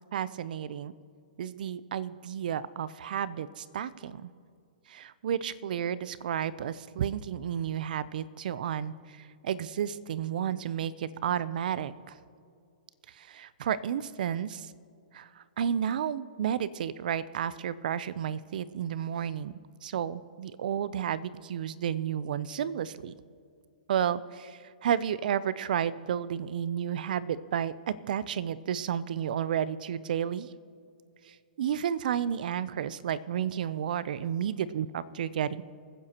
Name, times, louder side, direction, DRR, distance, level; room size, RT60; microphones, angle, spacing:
voice 1, 0.1-0.9 1.4-4.3 4.9-12.2 13.2-14.7 15.1-19.5 19.8-23.1 23.9-30.5 31.3-35.6, right 9 dB, 65° right, 17 dB, 0.6 m, -32 dB
24.5 x 9.9 x 3.0 m, 2.3 s
hypercardioid pair, 140°, 5 cm